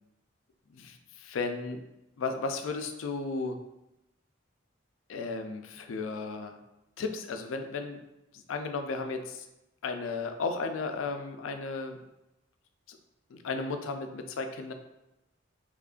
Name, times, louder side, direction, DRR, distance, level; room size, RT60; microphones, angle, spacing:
voice 1, 0.7-1.8 2.2-3.6 5.1-6.6 7.0-8.0 8.3-9.5 9.8-12.0 12.9-13.0 13.3-14.7, left 4 dB, 85° left, 6 dB, 0.4 m, -34 dB
3.1 x 2.4 x 3.6 m, 0.93 s
head